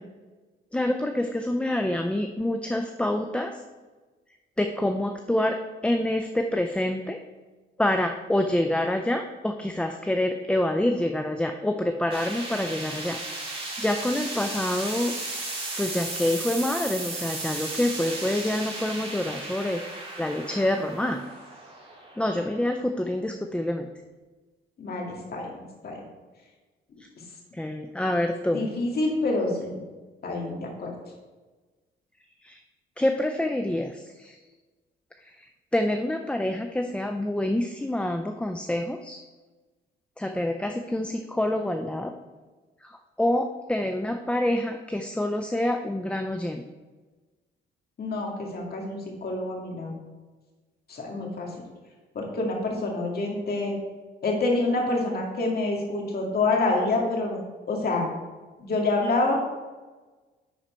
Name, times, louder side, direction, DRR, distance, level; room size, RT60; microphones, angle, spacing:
voice 1, 0.7-3.6 4.6-7.2 7.8-13.2 13.6-15.2 15.8-19.8 20.2-21.2 22.2-23.9 27.5-28.7 32.4-32.6 33.0-34.4 35.4-35.5 35.7-39.2 40.2-42.1 42.8-46.6, left 1 dB, 5° left, 5 dB, 0.5 m, -27 dB
sound 1, 12.1-23.2, right 2 dB, 30° right, 2.1 m, -35 dB
voice 2, 24.8-26.0 28.5-29.8 30.2-30.9 48.0-50.0 50.9-51.5 52.1-53.8 54.2-57.4 57.7-58.1 58.6-59.3, left 2 dB, 50° left, -1 dB, 2.2 m, -27 dB
10.5 x 4.3 x 4.4 m, 1.3 s
cardioid pair, 90°, 20 cm